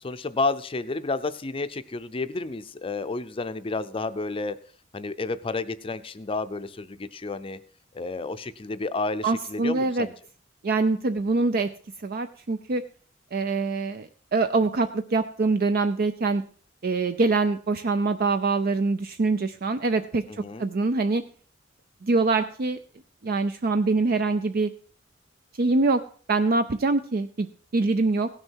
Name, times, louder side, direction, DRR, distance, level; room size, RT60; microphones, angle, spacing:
voice 1, 0.0-4.6 4.9-7.6 7.9-10.1 20.3-20.7, left 3 dB, 30° left, 12 dB, 0.5 m, -31 dB
voice 2, 9.2-10.1 10.6-11.7 12.0-12.8 13.3-16.4 16.8-20.2 20.6-21.2 22.0-22.8 23.2-24.7 25.6-26.0 26.3-28.3, right 3 dB, 55° right, 10 dB, 0.5 m, -24 dB
16.5 x 6.5 x 4.5 m, 0.43 s
head